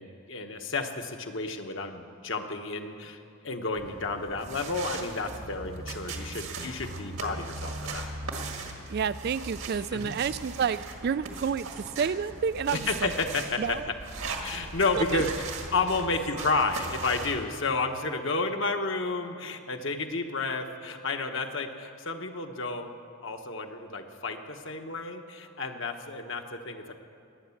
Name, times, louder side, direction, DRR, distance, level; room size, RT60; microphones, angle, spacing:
voice 1, 0.0-8.1 9.9-10.2 12.7-13.8 14.4-22.9 23.2-26.9, left 3 dB, 60° left, 5 dB, 1.2 m, -31 dB
sound 1, 3.8-17.5, right 3 dB, 75° right, 1.9 m, -39 dB
voice 2, 8.9-13.1 13.6-13.9 14.9-15.2, right 6 dB, 45° right, 15 dB, 0.3 m, -30 dB
20.5 x 9.3 x 7.2 m, 2.4 s
head